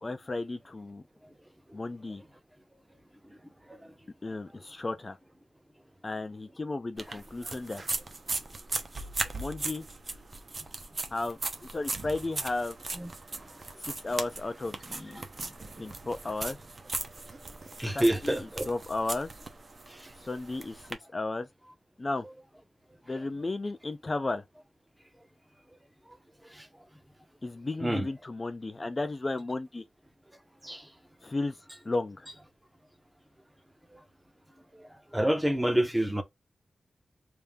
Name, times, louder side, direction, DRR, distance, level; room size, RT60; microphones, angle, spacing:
voice 1, 0.0-1.0 1.7-2.2 4.2-5.2 6.0-7.8 9.3-9.9 11.1-12.8 13.8-15.2 15.8-16.6 17.9-19.3 20.2-20.8 21.1-21.5 22.0-22.3 23.1-24.4 27.4-29.8 31.2-31.6 31.8-32.3, left 2 dB, 30° left, 0.4 m, -34 dB
sound 1, 7.0-20.9, right 3 dB, 40° right, 0.8 m, -38 dB
voice 2, 17.8-18.7 27.8-28.1 30.6-30.8 35.1-36.2, right 1 dB, 10° right, 0.7 m, -27 dB
3.4 x 2.7 x 3.4 m
wide cardioid pair, 130°, 0 cm